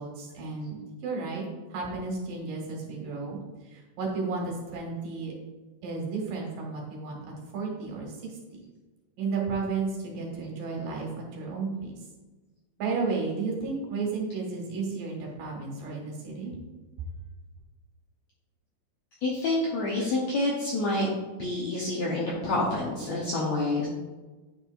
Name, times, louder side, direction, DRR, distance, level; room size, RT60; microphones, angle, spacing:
voice 1, 0.0-3.4 3.6-5.3 5.8-8.4 9.2-11.9 12.8-16.6, right 4 dB, 65° right, -1 dB, 2.8 m, -33 dB
voice 2, 19.2-21.1 21.4-23.9, left 2 dB, 75° left, -4 dB, 1.6 m, -28 dB
9.5 x 5.4 x 2.5 m, 1.2 s
omnidirectional pair, 4.3 m